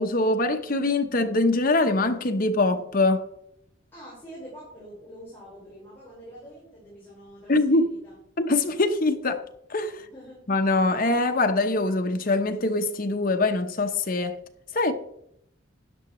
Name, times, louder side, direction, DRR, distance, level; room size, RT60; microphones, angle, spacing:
voice 1, 0.0-3.2 7.5-7.9 8.4-9.4 9.7-10.0 10.5-14.4 14.7-14.9, left 2 dB, 45° left, 0.9 m, -23 dB
voice 2, 3.9-8.2 9.9-10.4, equal, 10° left, 5.0 m, -45 dB
12.5 x 9.7 x 3.1 m
head